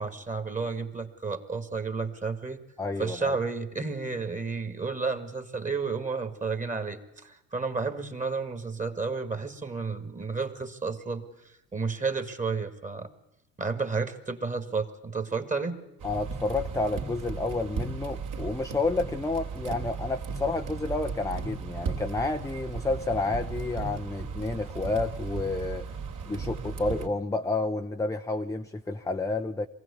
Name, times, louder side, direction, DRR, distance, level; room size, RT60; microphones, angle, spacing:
voice 1, 0.0-2.6 3.0-11.2 11.7-13.1 13.6-15.8, right 4 dB, 20° right, 8 dB, 2.1 m, -31 dB
voice 2, 2.8-3.4 16.0-25.9 26.3-29.7, left 3 dB, 10° left, 5 dB, 0.8 m, -30 dB
sound 1, 16.0-27.1, right 5 dB, 50° right, 3.0 m, -36 dB
23.0 x 15.5 x 8.4 m, 0.89 s
supercardioid pair, 95°, 39 cm